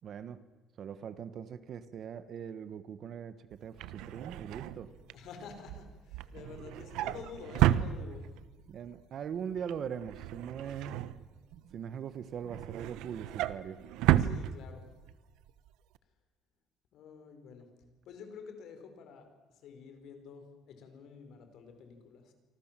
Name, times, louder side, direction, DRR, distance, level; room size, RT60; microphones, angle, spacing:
voice 1, 0.0-0.4 0.8-4.9 8.7-11.1 11.7-13.8, right 8 dB, 40° right, 14 dB, 1.2 m, -41 dB
Drawer open or close, 3.5-8.6 8.9-9.3 9.5-11.7 12.1-15.1 15.5-15.7 15.9-16.0, right 12 dB, 80° right, 1.0 m, -32 dB
voice 2, 5.1-8.3 14.2-14.9 16.9-17.7 18.0-22.3, left 6 dB, 55° left, 7 dB, 4.9 m, -49 dB
28.5 x 24.5 x 7.5 m, 1.2 s
cardioid pair, 175°, 0 cm